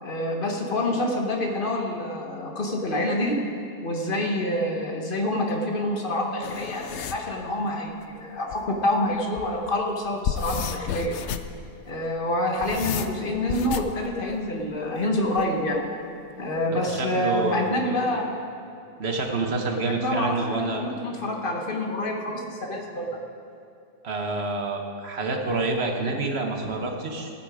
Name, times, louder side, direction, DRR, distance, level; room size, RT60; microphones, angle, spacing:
voice 1, 0.0-3.4 3.8-11.2 11.8-15.8 16.4-18.4 19.7-23.2, left 1 dB, 35° left, 1 dB, 1.3 m, -27 dB
sound 1, 6.4-7.2 8.5-8.6 9.1-9.5 10.0-11.6 12.3-14.0 15.4-15.8, left 8 dB, 70° left, 0.6 m, -32 dB
voice 2, 16.7-18.0 19.0-20.8 24.0-27.3, right 3 dB, 45° right, 2 dB, 1.3 m, -28 dB
15.0 x 8.9 x 5.0 m, 2.6 s
omnidirectional pair, 1.7 m